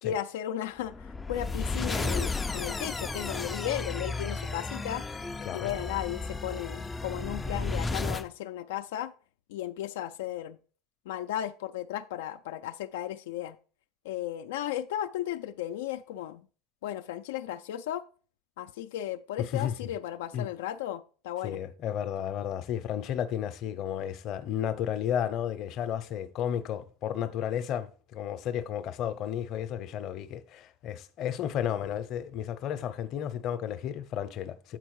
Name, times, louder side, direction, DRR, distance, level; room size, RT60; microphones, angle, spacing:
voice 1, 0.0-5.0 5.5-9.1 9.5-10.6 11.1-13.6 14.0-16.4 16.8-18.0 18.6-21.6, left 12 dB, 85° left, 0.3 m, -35 dB
sound 1, 0.9-8.3, left 3 dB, 10° left, 0.3 m, -33 dB
voice 2, 19.4-19.7 20.3-20.5 21.4-34.8, left 9 dB, 45° left, 0.7 m, -33 dB
7.9 x 4.4 x 4.6 m
supercardioid pair, 140°, 0 cm